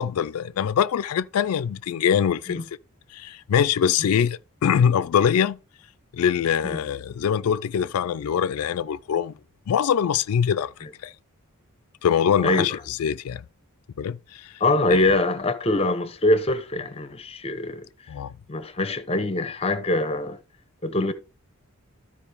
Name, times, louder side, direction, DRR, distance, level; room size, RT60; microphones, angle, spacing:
voice 1, 0.0-2.6 3.1-5.6 6.1-9.3 9.7-10.7 11.0-11.1 12.0-13.4 14.0-14.5 14.9-15.1 18.1-18.3, left 8 dB, 85° left, 0.3 m, -23 dB
voice 2, 12.4-12.8 14.6-17.9 18.5-20.4 20.8-21.1, left 2 dB, 25° left, 0.7 m, -24 dB
13.0 x 4.8 x 3.4 m
head